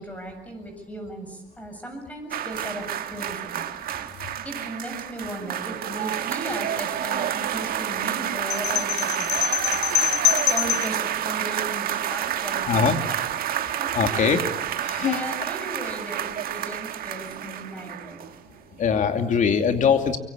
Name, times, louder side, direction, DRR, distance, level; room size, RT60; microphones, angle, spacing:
voice 1, 0.0-2.8 3.1-3.7 4.4-9.3 9.8-13.2 13.5-14.3 15.0-18.2, right 1 dB, 10° left, 5 dB, 7.6 m, -36 dB
sound 1, 2.3-18.6 18.9-19.0, right 10 dB, 60° right, 1.5 m, -29 dB
sound 2, 8.5-11.0, left 12 dB, 80° left, 1.7 m, -24 dB
voice 2, 12.7-13.0 13.9-14.4 14.8-15.2 18.8-20.2, left 6 dB, 50° left, 6 dB, 2.7 m, -21 dB
24.0 x 24.0 x 8.6 m, 0.97 s
cardioid pair, 110°, 17 cm